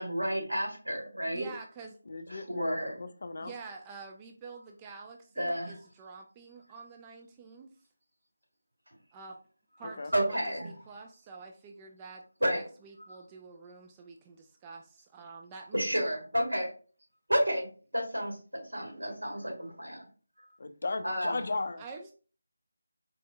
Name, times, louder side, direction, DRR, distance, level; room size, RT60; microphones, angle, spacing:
voice 1, 0.0-1.5 2.3-2.9 5.4-5.8 9.8-10.7 12.4-12.6 13.0-13.2 15.7-16.7 17.3-17.7 17.9-20.1 20.4-20.5 21.0-21.5, equal, 85° right, 1.7 m, -31 dB
voice 2, 1.3-2.0 3.4-7.7 9.1-9.4 9.8-15.9 21.8-22.1, right 4 dB, 15° right, 0.3 m, -47 dB
voice 3, 2.1-3.5 9.8-10.1 20.6-21.8, left 3 dB, 55° left, 0.4 m, -36 dB
4.2 x 2.6 x 2.3 m
figure-of-eight pair, 160°, 0 cm